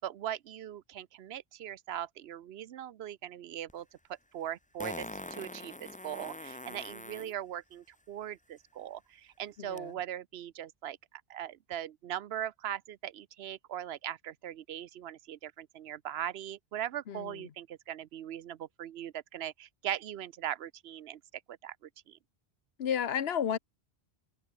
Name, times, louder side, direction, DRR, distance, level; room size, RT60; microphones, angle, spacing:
voice 1, 0.0-3.9 4.3-11.0 11.3-21.2 21.5-21.8 22.1-22.2, right 11 dB, 80° right, 0.9 m, -40 dB
Fart, 3.7-3.8 4.8-7.3 9.8-9.9, left 1 dB, 10° left, 0.7 m, -43 dB
voice 2, 9.6-10.0 17.1-17.5 22.8-23.6, left 8 dB, 75° left, 1.1 m, -32 dB
open air
omnidirectional pair, 1.1 m